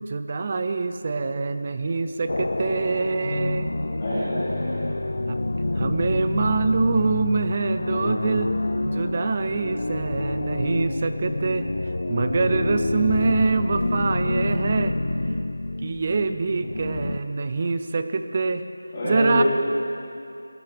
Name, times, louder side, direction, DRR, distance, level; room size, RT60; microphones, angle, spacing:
voice 1, 0.0-3.7 5.3-5.4 5.8-8.5 8.8-11.7 12.1-14.9 15.8-18.6 19.0-19.4, right 4 dB, 20° right, 9 dB, 0.5 m, -25 dB
sound 1, 2.3-17.2, left 2 dB, 55° left, 0.4 m, -27 dB
voice 2, 4.0-5.0 18.9-19.4, left 1 dB, 20° left, -13 dB, 3.1 m, -26 dB
25.5 x 14.0 x 3.5 m, 2.6 s
figure-of-eight pair, 180°, 0 cm